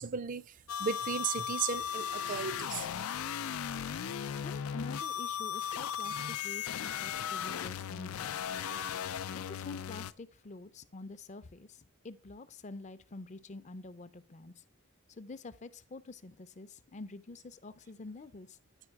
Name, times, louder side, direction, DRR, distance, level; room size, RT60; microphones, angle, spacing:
voice 1, 0.0-2.9, right 6 dB, 40° right, 0.4 m, -35 dB
sound 1, 0.7-10.1, left 8 dB, 90° left, 0.4 m, -37 dB
voice 2, 4.4-8.5 9.3-14.6 15.1-18.6, left 3 dB, 35° left, 0.5 m, -47 dB
9.9 x 4.7 x 4.6 m
head